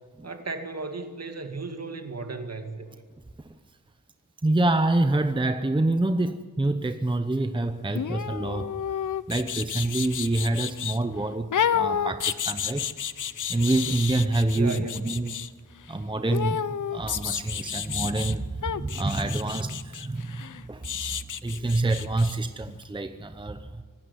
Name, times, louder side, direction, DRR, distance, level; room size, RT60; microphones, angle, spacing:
voice 1, 0.2-2.9 14.5-15.0, right 3 dB, 50° right, 6 dB, 2.3 m, -35 dB
voice 2, 4.4-8.7 9.3-12.9 13.5-15.3 15.9-23.8, right 2 dB, 15° right, 9 dB, 0.8 m, -27 dB
sound 1, 7.9-11.0 11.5-15.5 16.3-18.4 18.6-22.4 22.7-22.8, left 8 dB, 65° left, 0.7 m, -30 dB
25.0 x 12.5 x 9.8 m, 1.5 s
wide cardioid pair, 95°, 33 cm